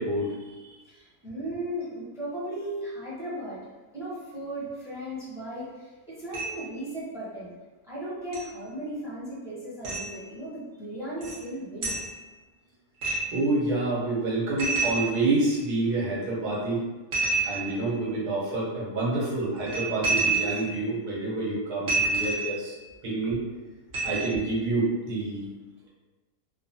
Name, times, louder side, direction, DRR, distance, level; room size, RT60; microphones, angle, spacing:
voice 1, 0.0-0.8 13.3-16.8 17.5-22.7 23.0-23.4 24.0-25.5, right 2 dB, 75° right, -6 dB, 1.5 m, -28 dB
voice 2, 0.9-3.6 3.9-7.5 7.8-11.9, right 1 dB, 5° right, -9 dB, 0.6 m, -36 dB
sound 1, 6.3-6.7 8.3-8.4 9.8-10.1 11.2-11.4 11.8-12.1 13.0-13.4 14.6-15.6 17.1-18.0 19.6-20.8 21.9-22.7 23.9-24.5, right 4 dB, 55° right, 1.3 m, -28 dB
3.2 x 2.1 x 2.7 m, 1.2 s
omnidirectional pair, 1.7 m